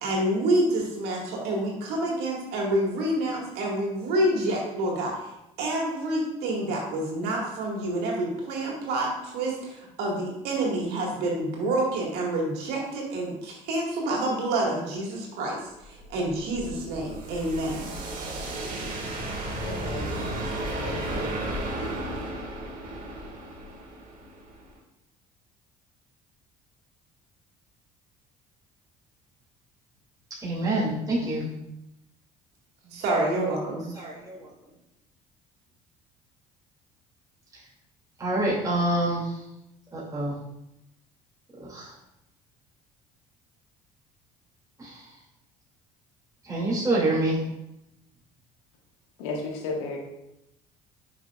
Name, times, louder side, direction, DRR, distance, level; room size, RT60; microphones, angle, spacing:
voice 1, 0.0-5.2 5.6-15.6 15.8-17.9 32.8-33.9, right 1 dB, 70° right, -2 dB, 2.0 m, -28 dB
sound 1, 15.8-24.7, right 1 dB, 55° right, 1.8 m, -34 dB
voice 2, 19.6-20.2 20.8-21.3 49.2-50.0, left 3 dB, 85° left, 0 dB, 1.4 m, -34 dB
voice 3, 30.4-31.5 33.9-34.5 37.5-37.6 38.2-39.4 39.9-40.4 41.6-41.9 44.8-45.2 46.4-47.4, right 1 dB, 20° right, -7 dB, 2.6 m, -27 dB
8.1 x 5.9 x 2.5 m, 0.87 s
supercardioid pair, 70°, 17 cm